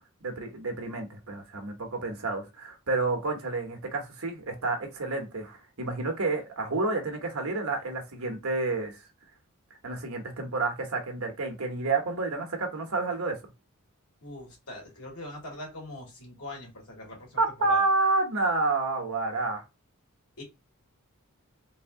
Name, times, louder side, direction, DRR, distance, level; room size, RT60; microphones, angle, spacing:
voice 1, 0.2-9.0 9.8-13.4 17.4-19.6, right 3 dB, 75° right, 1.2 m, -29 dB
voice 2, 14.2-17.9 20.4-20.5, left 1 dB, 90° left, 2.1 m, -42 dB
4.0 x 2.7 x 3.7 m
head